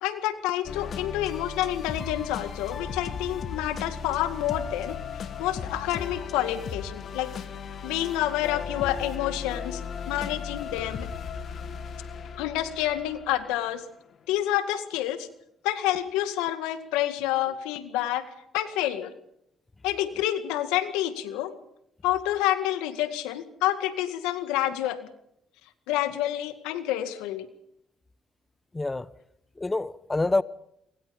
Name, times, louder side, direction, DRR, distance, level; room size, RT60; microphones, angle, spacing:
voice 1, 0.0-5.0 5.4-7.3 7.8-9.8 10.1-11.1 12.4-13.8 14.3-15.3 15.6-18.2 18.5-19.1 19.8-21.5 22.0-25.1 25.9-27.5, left 13 dB, 90° left, 2.0 m, -28 dB
sound 1, 0.6-13.8, left 6 dB, 60° left, 2.5 m, -36 dB
voice 2, 28.7-29.1 29.6-30.4, left 2 dB, 20° left, 1.0 m, -26 dB
27.5 x 23.5 x 5.4 m
supercardioid pair, 60°, 0 cm